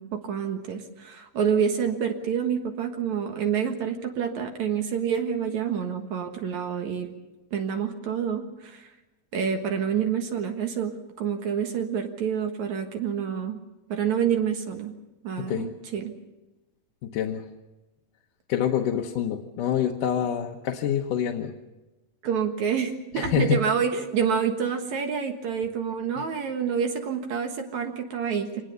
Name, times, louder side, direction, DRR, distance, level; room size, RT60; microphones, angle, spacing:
voice 1, 0.0-7.1 7.5-8.9 9.3-13.6 13.9-14.9 15.2-16.1 22.2-28.6, right 7 dB, 65° right, 5 dB, 2.8 m, -28 dB
voice 2, 15.4-15.7 17.0-17.4 18.5-21.5 23.2-23.6, left 9 dB, 85° left, 1 dB, 2.7 m, -26 dB
25.0 x 19.5 x 6.7 m, 1.1 s
omnidirectional pair, 3.7 m